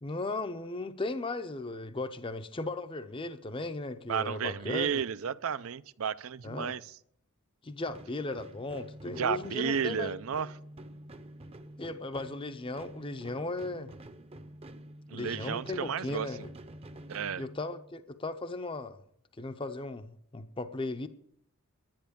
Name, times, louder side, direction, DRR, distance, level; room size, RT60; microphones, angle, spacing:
voice 1, 0.0-5.0 6.4-6.7 7.6-10.1 11.8-13.9 15.1-16.5 17.4-19.0 19.4-21.1, left 2 dB, 25° left, 0.6 m, -36 dB
voice 2, 4.1-6.8 9.1-10.5 15.1-16.3 17.1-17.4, right 7 dB, 65° right, 0.5 m, -32 dB
sound 1, 7.8-18.0, right 1 dB, 25° right, 0.7 m, -48 dB
10.5 x 10.5 x 6.9 m
head